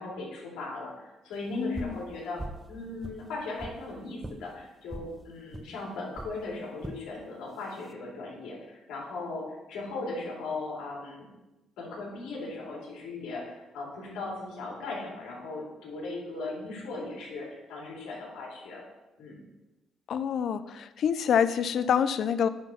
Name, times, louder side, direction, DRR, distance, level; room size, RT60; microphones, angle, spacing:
voice 1, 0.0-11.3 11.8-18.8 19.2-19.4, left 2 dB, 90° left, -4 dB, 3.1 m, -38 dB
voice 2, 1.5-2.0 20.1-22.5, left 8 dB, 65° left, 14 dB, 0.5 m, -27 dB
sound 1, 1.7-2.0 2.4-2.7 3.0-3.8 4.2-4.4 4.9-5.1 5.5-5.7 6.1-6.3 6.8-7.0 7.6-7.9, right 2 dB, 15° right, 0.7 m, -40 dB
9.4 x 4.1 x 5.8 m, 1.0 s
cardioid pair, 90°, 0 cm